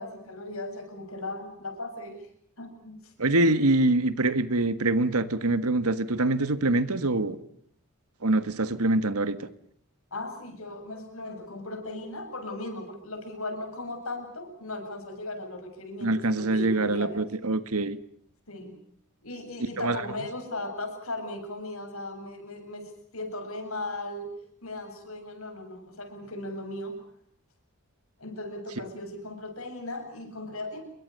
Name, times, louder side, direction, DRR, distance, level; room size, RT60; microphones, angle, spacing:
voice 1, 0.0-2.2 2.6-3.1 10.1-17.3 18.5-18.7 19.2-24.3 24.6-27.0 28.2-30.8, left 2 dB, 70° left, 7.5 m, -37 dB
voice 2, 3.2-7.4 8.2-9.5 16.0-18.0 19.6-20.0, right 2 dB, 90° right, 1.6 m, -25 dB
28.5 x 23.0 x 6.7 m
head